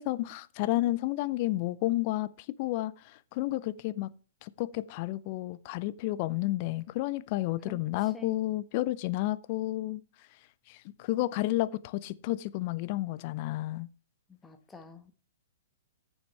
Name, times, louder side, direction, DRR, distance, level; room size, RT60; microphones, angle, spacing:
voice 1, 0.0-4.1 4.4-10.0 10.7-13.9, left 17 dB, 45° left, 0.6 m, -31 dB
voice 2, 7.7-8.4 14.3-15.1, left 1 dB, 10° left, 1.4 m, -49 dB
14.5 x 7.2 x 3.3 m
figure-of-eight pair, 115°, 0 cm